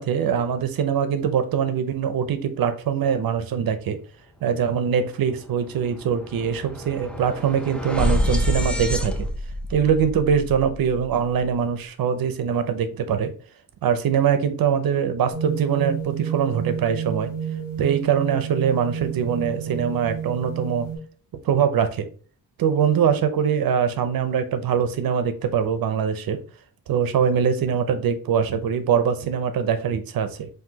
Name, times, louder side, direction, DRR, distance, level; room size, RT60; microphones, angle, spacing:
voice 1, 0.0-4.0 4.4-9.3 9.7-13.3 13.8-17.3 17.8-20.9 21.4-22.1 22.6-26.4 26.9-30.5, right 7 dB, 75° right, 10 dB, 0.7 m, -23 dB
sound 1, 4.8-5.0 5.3-11.5, equal, 5° left, 0.4 m, -28 dB
sound 2, 15.3-21.0, right 8 dB, 45° left, 1.6 m, -30 dB
5.7 x 2.7 x 2.7 m, 0.41 s
wide cardioid pair, 155°, 35 cm